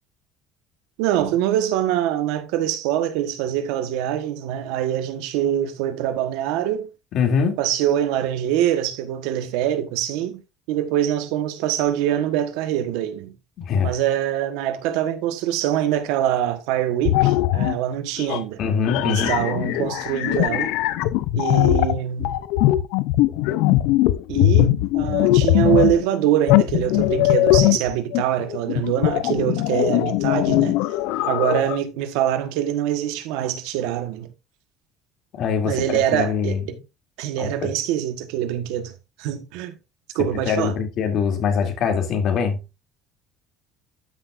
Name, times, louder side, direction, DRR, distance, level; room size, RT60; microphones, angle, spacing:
voice 1, 1.0-6.9 7.6-10.4 10.7-13.3 13.8-18.6 19.0-20.7 21.3-22.3 24.3-30.8 31.3-34.3 35.6-36.8 37.2-38.9 39.2-39.8 40.1-40.7, right 11 dB, 90° right, 1.4 m, -24 dB
voice 2, 7.1-7.6 13.6-14.0 18.6-19.3 35.3-36.6 37.4-37.7 40.4-42.6, left 6 dB, 50° left, 2.9 m, -23 dB
sound 1, 17.1-17.8 18.2-18.4 18.8-26.0 26.5-31.8, left 15 dB, 85° left, 0.7 m, -20 dB
13.0 x 6.2 x 2.6 m
cardioid pair, 140°, 0 cm